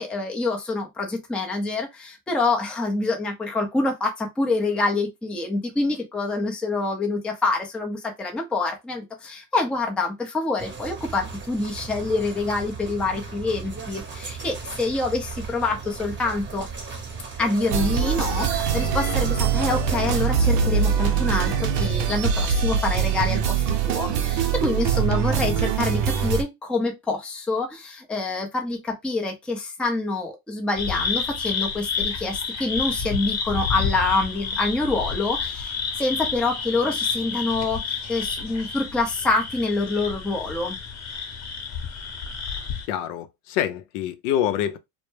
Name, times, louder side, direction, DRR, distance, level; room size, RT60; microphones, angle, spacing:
voice 1, 0.0-16.7 17.4-40.8, left 3 dB, ahead, 0.4 m, -26 dB
sound 1, 10.6-20.3, right 4 dB, 25° right, 0.8 m, -36 dB
sound 2, 17.7-26.4, right 7 dB, 60° right, 0.7 m, -23 dB
sound 3, 30.8-42.9, left 5 dB, 35° left, 0.9 m, -30 dB
voice 2, 42.9-44.8, left 10 dB, 65° left, 0.6 m, -26 dB
2.1 x 2.1 x 3.1 m
supercardioid pair, 100°, 47 cm